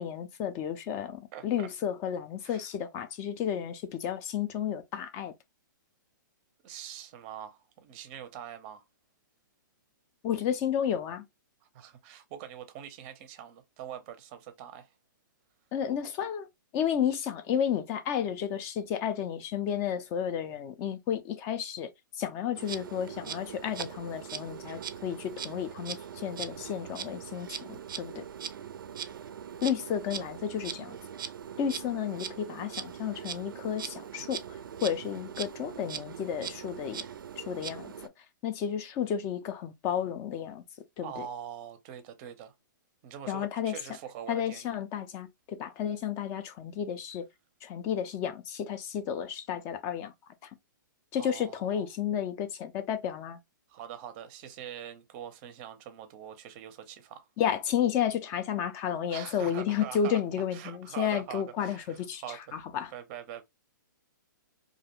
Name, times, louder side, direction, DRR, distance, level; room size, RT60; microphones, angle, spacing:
voice 1, 0.0-5.3 10.2-11.2 15.7-16.5 16.7-21.9 22.2-28.2 29.6-31.0 31.6-34.4 34.8-37.0 37.5-37.9 38.4-40.6 41.0-41.2 43.3-43.8 44.3-47.3 47.6-50.1 51.1-53.4 57.4-62.2 62.5-62.9, left 9 dB, 25° left, 0.4 m, -32 dB
voice 2, 1.3-1.7 2.4-2.7 6.6-8.8 11.7-14.9 41.0-42.5 43.0-44.8 51.1-51.9 53.7-57.3 59.1-60.2 60.5-62.6 62.9-63.4, right 10 dB, 30° right, 0.6 m, -43 dB
Insect, 22.5-38.1, right 8 dB, 80° right, 0.4 m, -41 dB
2.4 x 2.1 x 2.9 m
hypercardioid pair, 145°, 11 cm